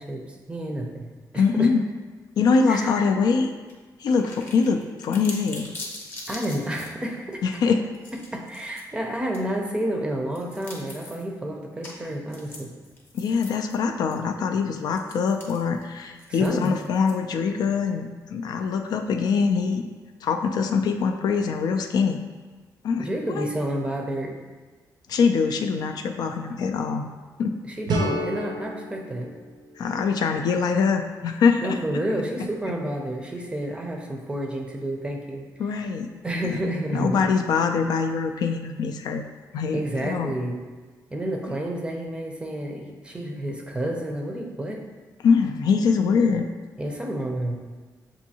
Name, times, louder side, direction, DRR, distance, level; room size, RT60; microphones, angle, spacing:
voice 1, 0.0-1.7 2.7-3.0 6.3-7.4 8.3-12.7 16.3-16.7 23.0-24.4 27.6-29.3 31.6-35.5 36.2-37.3 39.7-40.6 41.1-44.8 46.8-47.6, right 1 dB, 15° right, 1 dB, 0.5 m, -30 dB
voice 2, 1.3-1.8 2.4-3.5 4.0-5.7 7.4-7.8 13.1-19.9 20.2-22.2 22.8-23.1 23.4-23.5 25.1-27.1 27.4-27.5 29.8-31.8 35.6-36.1 36.9-39.2 39.5-40.3 45.2-46.5, left 5 dB, 70° left, 4 dB, 0.3 m, -23 dB
sound 1, 3.7-3.8 4.1-6.9 7.4-7.5 7.9-8.8 9.3-9.4 10.3-11.2 11.8-12.0 12.3-13.7 14.1-14.2 14.9-17.4, left 2 dB, 30° left, 0.8 m, -42 dB
sound 2, 27.9-30.8, right 1 dB, 75° right, 0.6 m, -31 dB
7.0 x 2.7 x 2.8 m, 1.4 s
wide cardioid pair, 155°, 7 cm